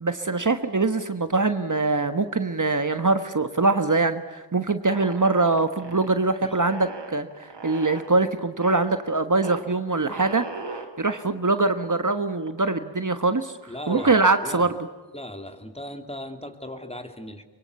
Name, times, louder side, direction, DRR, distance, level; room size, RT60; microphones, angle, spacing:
voice 1, 0.0-7.3 7.6-14.7, right 3 dB, 45° right, 9 dB, 1.4 m, -23 dB
sound 1, 4.9-6.2 6.6-8.1 8.6-8.9 9.4-9.6 10.1-10.9 11.5-11.6 11.8-12.6 13.2-13.4 13.7-14.4, right 3 dB, 70° right, 4.0 m, -37 dB
voice 2, 5.8-6.6 13.7-14.8 15.1-17.4, left 1 dB, 15° left, 6 dB, 2.8 m, -38 dB
24.5 x 23.5 x 8.3 m, 1.3 s
wide cardioid pair, 65°, 43 cm